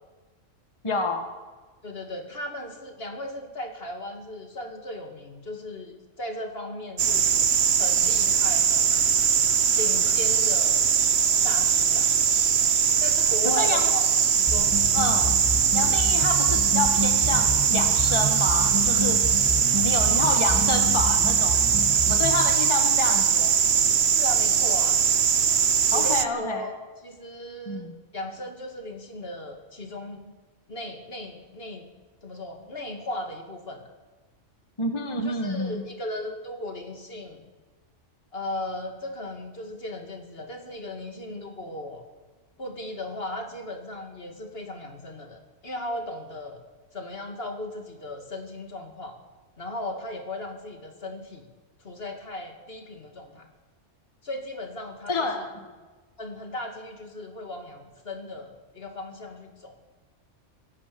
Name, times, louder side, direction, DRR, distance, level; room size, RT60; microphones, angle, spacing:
voice 1, 0.8-1.3 13.4-13.9 14.9-15.3 15.7-19.2 19.8-21.6 22.1-23.6 25.9-26.7 27.7-27.9 34.8-35.8 55.1-55.7, left 3 dB, 25° left, 4 dB, 1.7 m, -28 dB
voice 2, 1.8-7.3 7.8-9.1 9.8-10.8 11.4-12.1 13.0-14.0 14.3-14.7 19.6-20.0 24.0-25.0 25.9-26.7 27.0-27.9 28.1-30.3 30.7-31.9 32.2-33.8 35.2-37.4 38.3-42.0 42.6-46.6 46.9-49.2 49.6-51.5 51.8-53.5 54.2-55.4 56.2-59.8, left 1 dB, 50° left, 4 dB, 2.5 m, -36 dB
sound 1, 7.0-26.2, right 7 dB, 60° right, 1.2 m, -21 dB
sound 2, 14.5-22.5, equal, 20° right, 2.3 m, -30 dB
24.5 x 16.0 x 6.9 m, 1.3 s
omnidirectional pair, 1.3 m